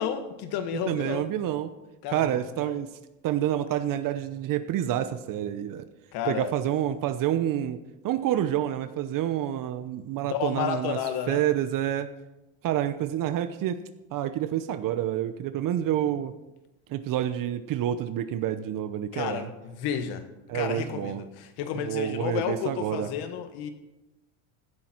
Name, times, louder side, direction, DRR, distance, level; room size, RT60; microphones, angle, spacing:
voice 1, 0.0-1.3 2.0-2.8 6.1-6.5 10.2-11.4 19.1-20.2 20.5-23.7, left 8 dB, 65° left, 8 dB, 1.7 m, -32 dB
voice 2, 0.9-1.7 2.1-2.9 3.2-5.9 6.2-7.8 8.0-11.0 11.3-12.1 12.6-13.8 14.1-16.3 16.9-19.5 20.5-21.2 21.9-23.1, right 11 dB, 50° right, 11 dB, 0.9 m, -28 dB
16.0 x 9.9 x 4.5 m, 0.99 s
supercardioid pair, 110°, 41 cm